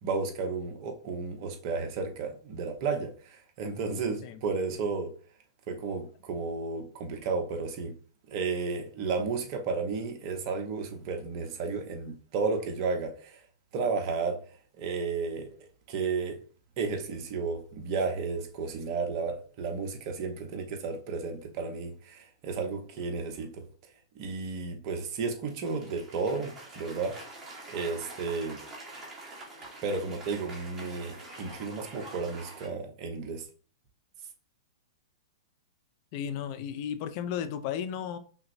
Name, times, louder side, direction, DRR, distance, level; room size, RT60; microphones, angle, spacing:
voice 1, 0.0-5.1 5.7-7.9 8.3-13.4 13.7-14.4 14.8-16.4 16.8-23.6 24.2-27.1 27.7-28.6 29.8-33.4, right 4 dB, 45° right, 0.9 m, -33 dB
Cheering / Applause, 25.5-32.7, right 2 dB, 20° right, 1.2 m, -46 dB
voice 2, 36.1-38.2, left 8 dB, 45° left, 0.4 m, -34 dB
5.6 x 2.1 x 2.6 m
hypercardioid pair, 140°, 3 cm